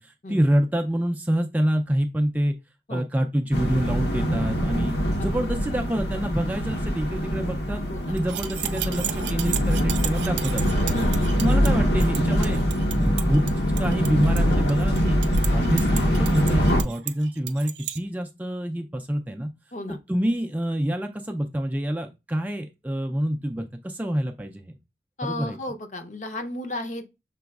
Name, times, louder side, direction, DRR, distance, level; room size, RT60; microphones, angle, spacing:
voice 1, 0.0-2.5 2.9-4.9 5.2-7.8 8.1-10.6 11.4-12.7 12.9-13.5 13.8-15.2 15.5-19.5 20.1-24.6 25.2-25.6, equal, 10° right, 0.3 m, -26 dB
sound 1, 3.5-16.8, equal, 80° left, 1.0 m, -23 dB
voice 2, 7.9-8.2 10.9-11.4 15.5-15.7 19.7-20.0 25.2-27.1, left 1 dB, 45° left, 0.6 m, -34 dB
sound 2, 8.2-18.0, right 13 dB, 85° right, 0.4 m, -34 dB
6.0 x 3.9 x 2.3 m
head